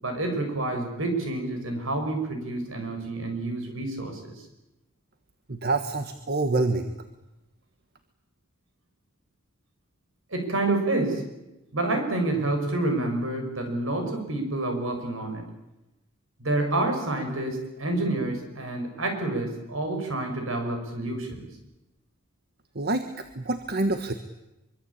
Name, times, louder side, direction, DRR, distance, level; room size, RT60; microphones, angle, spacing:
voice 1, 0.0-4.3 10.3-11.2 11.7-15.4 16.4-21.5, right 2 dB, 70° right, 4 dB, 6.9 m, -28 dB
voice 2, 5.5-6.9 22.7-23.0 23.3-24.1, right 2 dB, 50° right, 8 dB, 1.6 m, -26 dB
25.0 x 24.5 x 8.8 m, 0.97 s
head